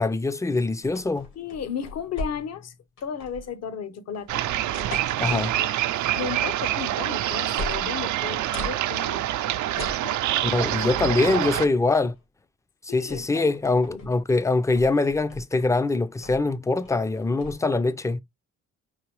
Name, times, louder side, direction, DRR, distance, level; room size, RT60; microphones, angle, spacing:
voice 1, 0.0-1.3 5.2-5.5 10.4-12.1 12.8-18.2, left 3 dB, 10° left, 0.4 m, -23 dB
sound 1, 0.8-2.7 3.0-3.5 4.1-5.6 6.6-7.0 7.3-8.8 9.7-10.1 11.4-11.5 11.9-12.2 13.1-13.2 13.5-14.1 14.5-15.7 16.2-16.5 16.8-17.5, left 2 dB, 80° left, 2.7 m, -39 dB
voice 2, 1.4-2.7 3.0-4.4 5.3-5.7 6.2-9.2 10.0-10.2 10.8-11.7 12.9-14.1, left 7 dB, 55° left, 0.9 m, -35 dB
sound 2, 4.3-11.7, right 13 dB, 75° right, 0.5 m, -26 dB
4.8 x 3.1 x 3.0 m
cardioid pair, 90°, 30 cm